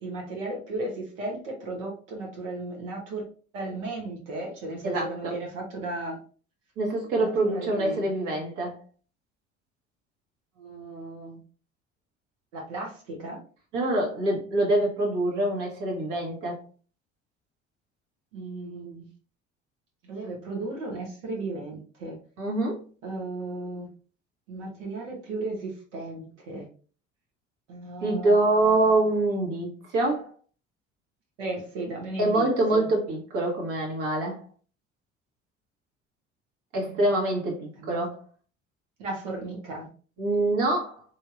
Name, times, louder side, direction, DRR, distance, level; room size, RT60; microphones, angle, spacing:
voice 1, 0.0-0.9 1.2-3.2 3.5-6.2 7.2-8.0 10.6-11.4 12.5-13.4 18.3-19.0 20.1-22.2 23.0-23.9 24.5-26.6 27.7-28.9 31.4-32.5 32.7-32.8 37.8-38.0 39.0-39.9, right 2 dB, 75° right, 1.0 m, -35 dB
voice 2, 4.8-5.4 6.8-8.8 13.7-16.6 22.4-22.8 28.0-30.3 32.2-34.4 36.7-38.2 40.2-41.0, right 2 dB, 55° right, 1.3 m, -25 dB
3.2 x 2.7 x 2.4 m
hypercardioid pair, 60°, 36 cm